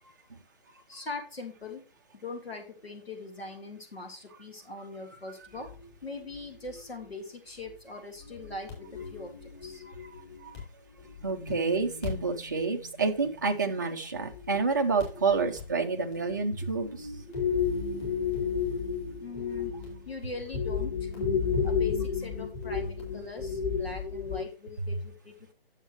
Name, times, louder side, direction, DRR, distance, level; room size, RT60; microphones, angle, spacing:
voice 1, 0.9-1.8 2.2-5.7 6.0-9.3 9.6-9.8 11.4-11.6 15.1-15.5 16.0-16.7 17.2-18.1 19.2-19.7 20.1-21.1 21.6-25.5, left 3 dB, 85° left, 4 dB, 1.9 m, -42 dB
sound 1, 5.6-5.9 6.3-6.7 7.0-7.1 7.7-7.8 8.2-10.6 11.0-13.8 14.1-14.6 15.0-15.7 16.1-16.5 16.8-24.4, left 6 dB, 25° left, 3.9 m, -33 dB
voice 2, 11.2-16.9, right 4 dB, 20° right, 3 dB, 0.4 m, -28 dB
9.3 x 7.2 x 3.0 m, 0.36 s
figure-of-eight pair, 155°, 30 cm